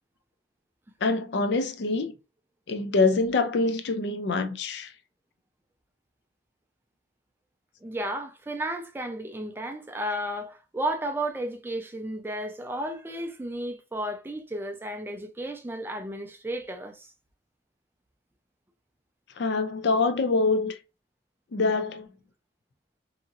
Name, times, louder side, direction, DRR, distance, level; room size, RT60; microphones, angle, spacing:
voice 1, 1.0-2.1 2.7-4.9 19.4-20.8 21.5-22.1, left 3 dB, 65° left, 0.4 m, -25 dB
voice 2, 7.8-17.1, right 1 dB, 10° right, 0.3 m, -33 dB
2.8 x 2.6 x 2.4 m
head